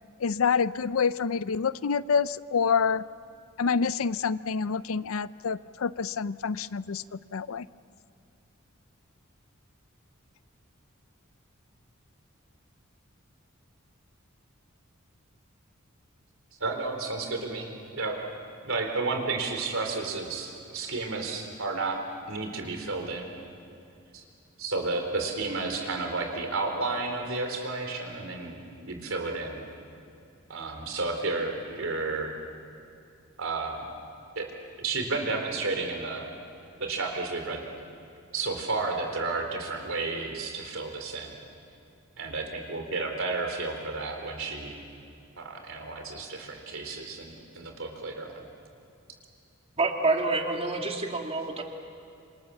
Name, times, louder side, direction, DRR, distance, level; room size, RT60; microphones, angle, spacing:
voice 1, 0.2-3.0 3.6-7.7, left 6 dB, 70° left, 16 dB, 0.5 m, -27 dB
voice 2, 16.6-18.3 18.6-22.0 22.3-23.3 24.1-24.2 24.6-28.6 28.8-29.6 30.5-32.3 33.4-33.9 34.4-34.5 34.8-36.3 36.8-37.6 38.3-41.3 42.2-44.8 45.4-48.4, right 3 dB, 70° right, 3 dB, 4.0 m, -32 dB
voice 3, 49.8-51.6, right 3 dB, 30° right, 2 dB, 2.3 m, -27 dB
27.0 x 26.0 x 7.1 m, 2.6 s
head